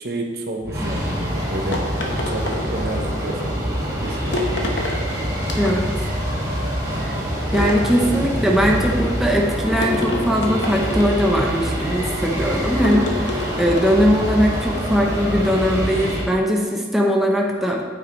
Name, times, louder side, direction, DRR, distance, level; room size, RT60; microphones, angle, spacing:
voice 1, 0.0-1.8 2.3-3.7 4.0-4.5 6.5-6.7, right 2 dB, 60° right, 2 dB, 1.0 m, -30 dB
sound 1, 0.6-16.2, equal, 20° right, 2.1 m, -25 dB
sound 2, 1.7-3.1 4.3-5.0 5.4-6.1 7.5-8.5 9.8-11.6 12.8-14.1, left 2 dB, 90° left, 1.2 m, -28 dB
voice 2, 5.6-5.9 7.0-7.2 7.5-17.8, equal, ahead, -1 dB, 0.9 m, -20 dB
9.1 x 8.6 x 3.2 m, 1.5 s
head